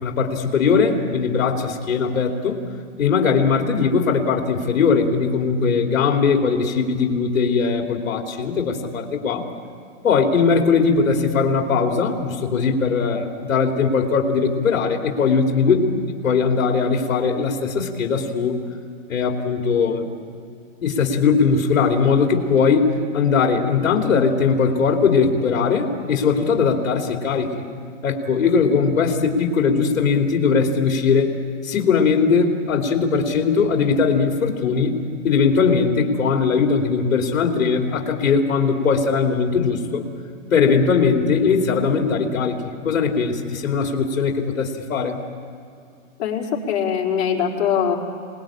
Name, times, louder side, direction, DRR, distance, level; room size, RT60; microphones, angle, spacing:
voice 1, 0.0-2.6 3.0-9.5 10.0-15.8 16.2-18.6 19.1-20.1 20.8-22.9 23.1-27.6 28.0-31.4 31.6-34.9 35.2-40.0 40.5-45.2, left 5 dB, 75° left, 2 dB, 2.9 m, -20 dB
voice 2, 46.2-47.9, left 8 dB, 50° left, -3 dB, 4.8 m, -22 dB
27.0 x 20.0 x 8.8 m, 2.4 s
hypercardioid pair, 170°, 40 cm